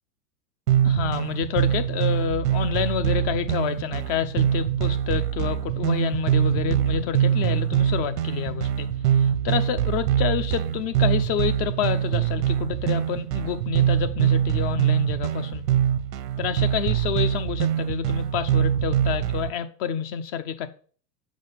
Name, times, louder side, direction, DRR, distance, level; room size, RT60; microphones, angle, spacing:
sound 1, 0.7-19.5, right 10 dB, 85° right, 0.9 m, -24 dB
voice 1, 0.8-15.6 16.4-20.7, left 8 dB, 50° left, 0.9 m, -28 dB
sound 2, 6.5-12.1, left 3 dB, 20° left, 0.4 m, -42 dB
6.4 x 5.2 x 5.7 m
hypercardioid pair, 115°, 48 cm